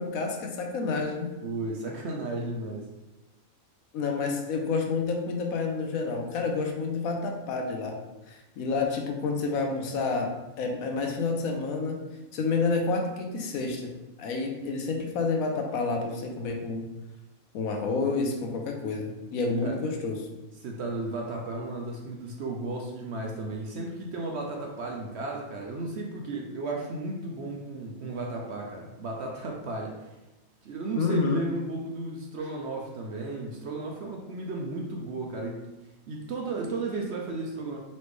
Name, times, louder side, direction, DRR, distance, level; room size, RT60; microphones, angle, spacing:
voice 1, 0.0-1.3 3.9-8.0 8.3-10.3 10.6-12.0 12.3-13.8 14.2-16.8 17.5-20.2 31.0-31.4, left 4 dB, 75° left, 3 dB, 1.1 m, -29 dB
voice 2, 1.4-2.9 19.6-19.8 20.5-30.1 30.6-35.7 36.1-37.8, right 2 dB, 65° right, 0 dB, 0.7 m, -34 dB
4.2 x 3.2 x 3.1 m, 1.0 s
omnidirectional pair, 1.5 m